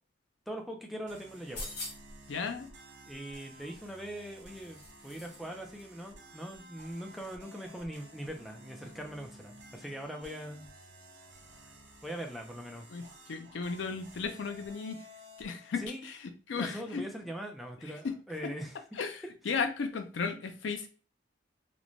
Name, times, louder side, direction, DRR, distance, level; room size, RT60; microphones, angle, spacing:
voice 1, 0.5-1.7 3.1-10.7 12.0-12.9 15.8-16.1 16.6-18.8, equal, ahead, 2 dB, 0.3 m, -41 dB
sound 1, 1.1-15.9, right 1 dB, 60° right, 0.7 m, -54 dB
sound 2, 1.3-2.2 3.7-5.5 5.7-5.9, left 1 dB, 50° left, 1.0 m, -44 dB
voice 2, 2.3-2.7 12.9-15.1 15.4-17.0 18.0-18.1 18.4-18.5 18.9-20.9, left 5 dB, 70° left, 7 dB, 0.4 m, -35 dB
3.0 x 2.1 x 2.5 m, 0.37 s
head